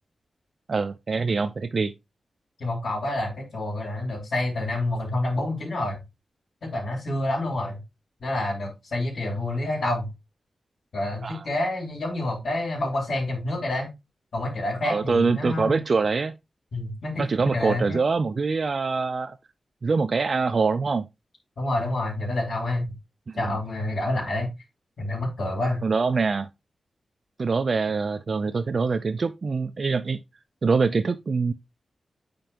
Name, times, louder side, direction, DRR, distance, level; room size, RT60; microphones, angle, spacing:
voice 1, 0.7-1.9 11.2-11.5 14.8-16.4 17.2-19.4 19.8-21.1 23.3-23.5 25.8-26.5 27.4-30.2 30.6-31.5, right 4 dB, 45° right, 0.5 m, -24 dB
voice 2, 2.6-6.0 6.6-7.8 8.2-10.1 10.9-13.9 14.3-15.8 16.7-18.0 21.6-22.9 23.4-24.5 25.0-25.8, left 1 dB, 65° left, 3.9 m, -28 dB
8.9 x 5.2 x 2.9 m
wide cardioid pair, 140°, 0 cm